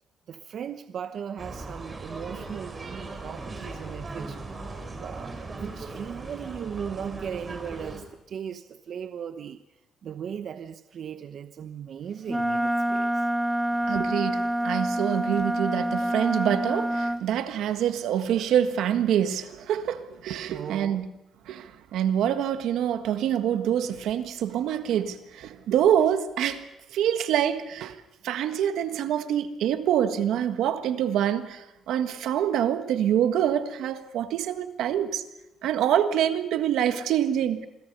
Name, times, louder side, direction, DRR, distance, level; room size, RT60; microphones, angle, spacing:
voice 1, 0.3-4.4 4.9-9.6 10.0-13.3 20.5-21.0, right 8 dB, 60° right, 0.9 m, -37 dB
sound 1, 1.4-8.0, right 3 dB, 30° right, 5.0 m, -38 dB
Wind instrument woodwind instrument, 12.3-17.2, right 1 dB, 5° right, 0.8 m, -27 dB
voice 2, 13.9-21.1 21.5-28.0 28.2-35.2 35.6-37.7, right 10 dB, 85° right, 1.6 m, -26 dB
27.5 x 22.0 x 5.5 m
cardioid pair, 100°, 0 cm